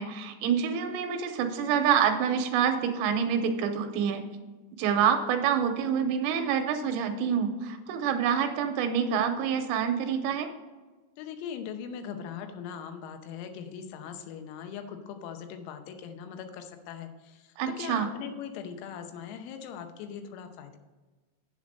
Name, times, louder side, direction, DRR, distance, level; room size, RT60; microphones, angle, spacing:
voice 1, 0.0-4.3 4.8-10.5 17.6-18.1, right 7 dB, 85° right, 6 dB, 3.3 m, -27 dB
voice 2, 11.2-20.8, left 7 dB, 90° left, 7 dB, 3.6 m, -40 dB
8.4 x 7.9 x 5.2 m, 1.2 s
omnidirectional pair, 5.9 m